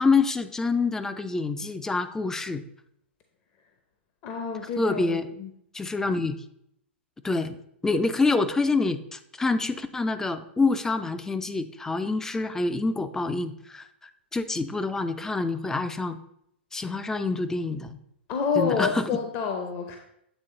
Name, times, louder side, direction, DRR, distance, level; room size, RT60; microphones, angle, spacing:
voice 1, 0.0-2.6 4.8-5.3 5.7-6.4 7.2-7.6 7.8-13.8 14.3-16.2 16.7-18.0 18.6-19.1, left 3 dB, 10° left, 11 dB, 0.4 m, -26 dB
voice 2, 4.2-5.5 16.8-17.0 18.3-20.0, left 5 dB, 35° left, 4 dB, 0.7 m, -28 dB
8.1 x 3.6 x 3.7 m, 0.76 s
figure-of-eight pair, 110°, 6 cm